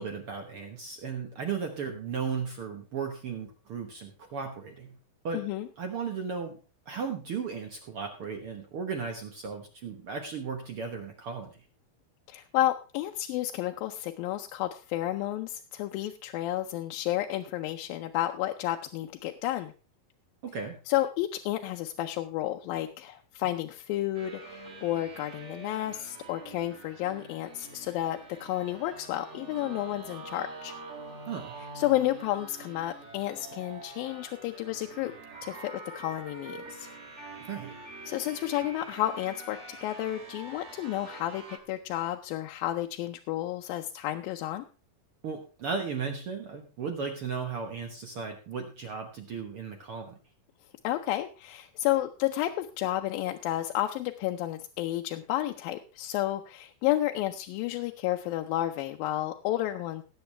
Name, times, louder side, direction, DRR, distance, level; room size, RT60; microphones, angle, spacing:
voice 1, 0.0-5.0 5.2-5.4 5.8-6.6 6.9-11.6 20.4-20.8 31.3-31.6 37.4-37.8 45.2-50.2, right 5 dB, 65° right, 4 dB, 1.4 m, -35 dB
voice 2, 5.3-5.7 12.3-19.7 20.9-30.7 31.8-35.1 35.4-36.9 38.1-44.7 50.8-60.0, left 14 dB, 80° left, 4 dB, 2.4 m, -31 dB
sound 1, 24.1-41.6, right 3 dB, 80° right, 0.6 m, -45 dB
18.5 x 8.1 x 3.3 m, 0.34 s
omnidirectional pair, 4.2 m